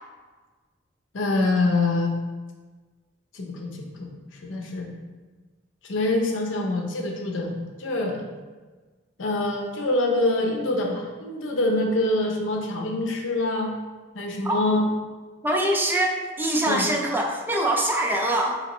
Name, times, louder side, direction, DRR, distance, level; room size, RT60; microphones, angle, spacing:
voice 1, 1.1-2.1 3.3-3.7 4.0-4.1 4.4-4.9 5.8-8.2 9.2-13.7 14.1-14.8 16.7-16.9, left 2 dB, 85° left, 1 dB, 0.6 m, -25 dB
voice 2, 15.4-18.6, right 1 dB, 10° right, 0 dB, 0.3 m, -23 dB
4.1 x 2.9 x 2.9 m, 1.4 s
head